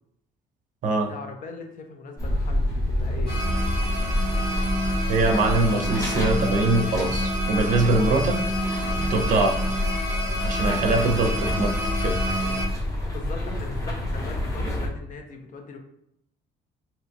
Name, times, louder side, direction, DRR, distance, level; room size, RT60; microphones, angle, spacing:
voice 1, 1.1-3.4 13.1-15.8, left 4 dB, 50° left, 4 dB, 0.6 m, -39 dB
sound 1, 2.2-14.9, left 1 dB, 20° left, 0.8 m, -28 dB
sound 2, 3.3-12.6, equal, 65° left, 1.1 m, -29 dB
voice 2, 5.1-8.4 9.1-9.6 10.4-11.7 12.0-12.2, right 2 dB, 50° right, 3 dB, 0.5 m, -23 dB
2.8 x 2.3 x 2.7 m, 0.75 s
cardioid pair, 110°, 17 cm